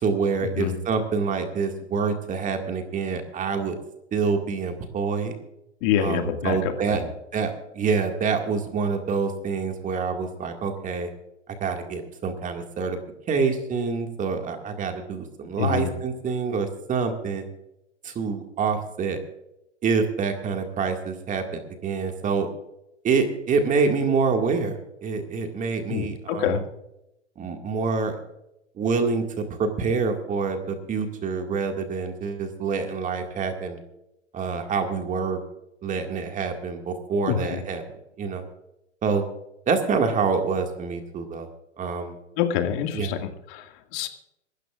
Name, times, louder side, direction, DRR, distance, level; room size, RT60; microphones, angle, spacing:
voice 1, 0.0-3.8 4.1-5.3 6.0-7.0 7.3-11.1 11.6-13.0 13.3-17.5 18.0-19.2 19.8-22.5 23.0-26.6 27.4-28.2 28.8-33.8 34.3-35.4 35.8-37.8 38.2-38.4 39.0-39.2 39.7-41.5 41.8-42.2 42.9-43.1, right 5 dB, 20° right, 5 dB, 2.1 m, -26 dB
voice 2, 5.8-7.1 15.6-15.9 25.9-26.6 37.3-37.6 42.4-44.1, left 9 dB, 45° left, 6 dB, 2.2 m, -26 dB
26.0 x 13.0 x 2.5 m, 0.86 s
hypercardioid pair, 110°, 37 cm